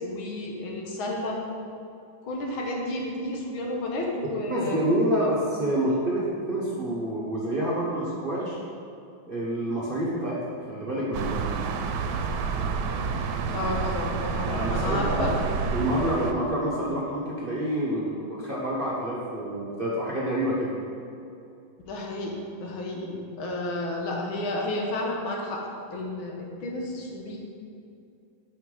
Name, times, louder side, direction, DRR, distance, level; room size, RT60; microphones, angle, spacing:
voice 1, 0.0-1.4 2.2-5.3 13.5-15.4 21.9-25.6 25.9-27.4, left 1 dB, 80° left, -1 dB, 1.9 m, -31 dB
voice 2, 4.5-8.6 9.2-11.4 14.4-15.4 15.7-20.7, right 1 dB, 40° right, -6 dB, 0.8 m, -28 dB
sound 1, 11.1-16.3, right 5 dB, 80° right, 1.4 m, -29 dB
9.4 x 5.8 x 3.8 m, 2.6 s
omnidirectional pair, 2.2 m